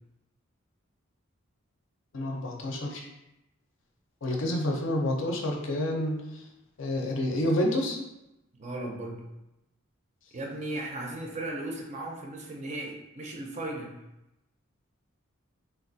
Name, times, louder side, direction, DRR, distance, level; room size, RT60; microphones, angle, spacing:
voice 1, 2.1-3.1 4.2-6.4 6.8-8.0, left 1 dB, 65° left, 0 dB, 0.5 m, -29 dB
voice 2, 8.5-9.3 10.3-14.0, right 2 dB, 35° right, 0 dB, 0.4 m, -36 dB
3.3 x 2.3 x 2.6 m, 0.91 s
head